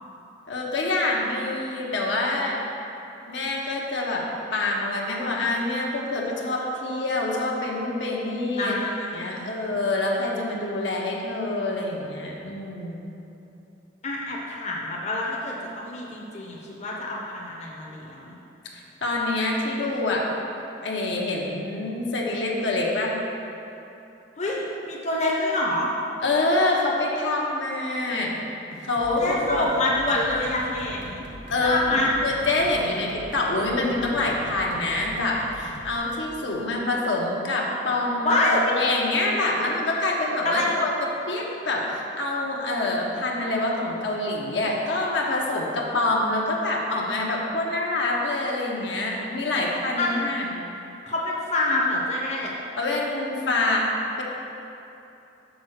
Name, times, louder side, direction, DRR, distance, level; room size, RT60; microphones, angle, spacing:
voice 1, 0.5-2.6 3.3-8.8 9.1-13.1 18.7-20.3 20.8-23.2 26.2-28.4 28.8-29.7 31.5-40.9 41.3-50.6 52.8-53.9 54.2-54.3, left 2 dB, 70° left, -2 dB, 1.0 m, -26 dB
voice 2, 8.6-9.8 14.0-18.4 24.4-25.9 29.2-31.2 31.6-32.1 38.2-38.6 40.4-40.7 50.0-50.2 51.1-52.5, left 2 dB, 35° left, -3 dB, 0.8 m, -26 dB
sound 1, 28.7-36.0, right 1 dB, 85° right, 0.9 m, -42 dB
6.2 x 4.2 x 6.4 m, 2.9 s
head